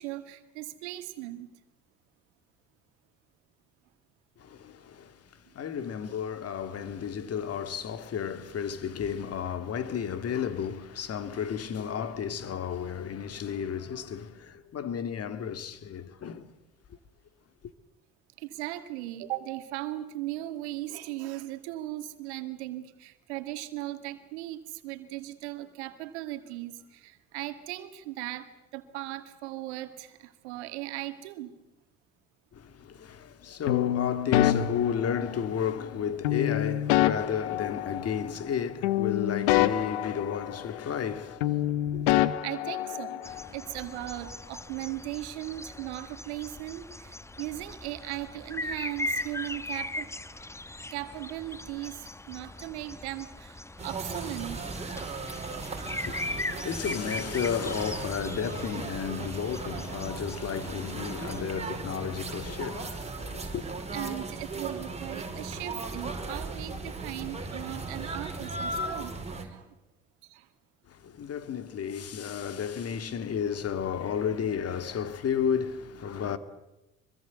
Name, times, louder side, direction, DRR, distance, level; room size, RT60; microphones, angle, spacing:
voice 1, 0.0-1.5 18.4-31.5 42.1-50.1 50.9-54.6 63.9-69.8 70.2-70.5, right 15 dB, 85° right, 2.0 m, -38 dB
voice 2, 4.4-16.5 32.5-42.2 55.8-63.7 70.9-76.4, left 8 dB, 45° left, 2.1 m, -33 dB
sound 1, 33.7-35.7 36.2-38.6 38.8-41.1 41.4-43.5, left 13 dB, 85° left, 1.2 m, -27 dB
sound 2, 43.2-61.4, left 2 dB, 10° left, 1.0 m, -40 dB
sound 3, 53.8-69.5, right 3 dB, 20° right, 4.9 m, -37 dB
24.5 x 23.0 x 8.2 m
hypercardioid pair, 75°, 33 cm